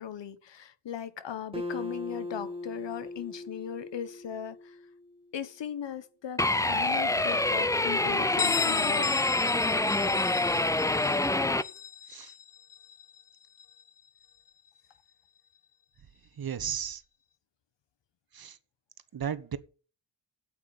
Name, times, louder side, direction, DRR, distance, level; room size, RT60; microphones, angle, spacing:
voice 1, 0.0-4.8 5.3-9.3, left 9 dB, 75° left, 1.2 m, -38 dB
Acoustic guitar, 1.5-5.1, left 2 dB, 10° right, 2.1 m, -39 dB
sound 1, 6.4-11.6, left 2 dB, 10° left, 0.4 m, -26 dB
Bell, 8.4-13.9, left 9 dB, 50° left, 0.7 m, -36 dB
voice 2, 16.4-17.0 18.3-18.6 19.1-19.6, right 8 dB, 55° right, 1.1 m, -34 dB
8.6 x 8.5 x 7.1 m
wide cardioid pair, 100°, 44 cm